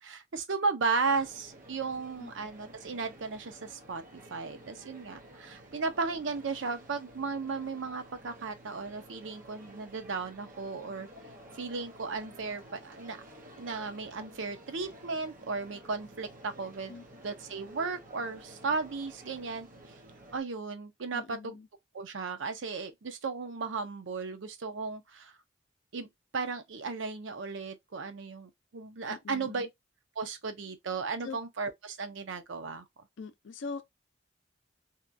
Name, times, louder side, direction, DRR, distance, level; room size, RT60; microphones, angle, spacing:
voice 1, 0.0-11.1 11.6-13.2 13.6-16.9 17.2-19.7 20.3-21.6 21.9-25.3 25.9-26.1 26.3-29.7 30.2-32.8, right 4 dB, 75° right, 0.6 m, -35 dB
sound 1, 1.0-20.4, right 1 dB, 45° right, 0.8 m, -52 dB
voice 2, 21.1-21.7 29.1-29.7 31.2-31.4 33.2-33.8, left 4 dB, 75° left, 0.5 m, -42 dB
2.9 x 2.2 x 2.4 m
head